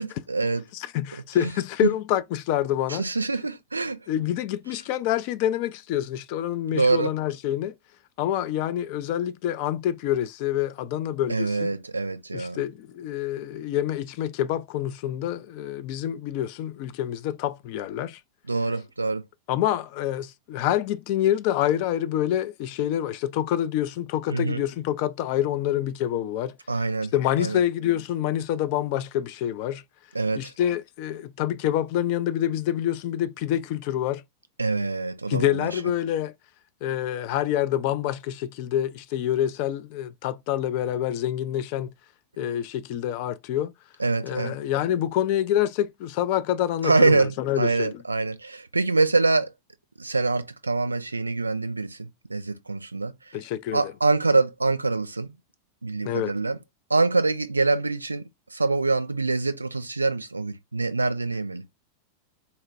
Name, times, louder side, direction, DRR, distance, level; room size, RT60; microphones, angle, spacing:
voice 1, 0.0-0.6 1.4-1.5 1.8-1.9 2.9-4.0 6.7-7.1 11.3-12.6 18.5-19.2 24.3-24.6 26.7-27.1 27.4-27.6 30.1-30.5 34.6-35.8 44.0-44.6 46.8-49.5 50.0-53.1 53.7-55.3 55.8-56.6 56.9-61.6, right 3 dB, 80° right, 0.4 m, -25 dB
voice 2, 0.7-3.0 4.1-7.7 8.2-11.7 12.3-18.2 19.5-26.5 27.1-29.8 30.4-34.2 35.3-36.3 36.8-41.9 42.4-43.7 44.2-48.0 53.3-53.9 56.1-56.3, left 11 dB, 45° left, 0.3 m, -27 dB
4.1 x 2.2 x 2.5 m
figure-of-eight pair, 90°, 0 cm